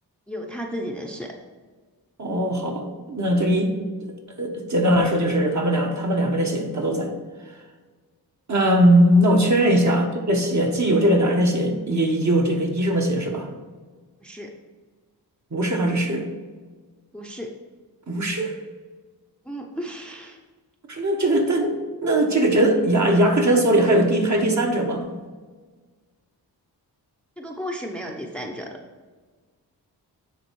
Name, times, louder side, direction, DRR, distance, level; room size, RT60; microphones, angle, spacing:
voice 1, 0.3-1.3 9.6-9.9 14.2-14.5 17.1-17.5 19.4-20.4 27.4-28.8, equal, 5° left, 1 dB, 0.7 m, -34 dB
voice 2, 2.2-3.7 4.4-7.1 8.5-13.5 15.5-16.3 18.1-18.6 20.9-21.8 22.0-25.1, right 1 dB, 45° right, 1 dB, 1.4 m, -20 dB
9.1 x 3.6 x 4.6 m, 1.4 s
wide cardioid pair, 80°, 40 cm